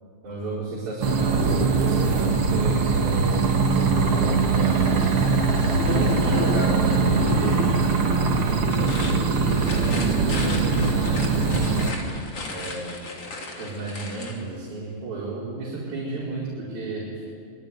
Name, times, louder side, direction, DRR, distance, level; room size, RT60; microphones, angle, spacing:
voice 1, 0.2-1.5 1.8-5.4 5.8-9.0 9.3-11.8 12.5-13.0 13.6-17.3, right 2 dB, 80° right, -6 dB, 6.6 m, -32 dB
sound 1, 1.0-11.9, right 4 dB, 45° right, 2.3 m, -22 dB
sound 2, 3.3-8.6, left 11 dB, 75° left, 1.7 m, -33 dB
sound 3, 8.7-14.4, left 3 dB, 40° left, 3.8 m, -36 dB
26.5 x 21.5 x 9.7 m, 2.3 s
omnidirectional pair, 4.2 m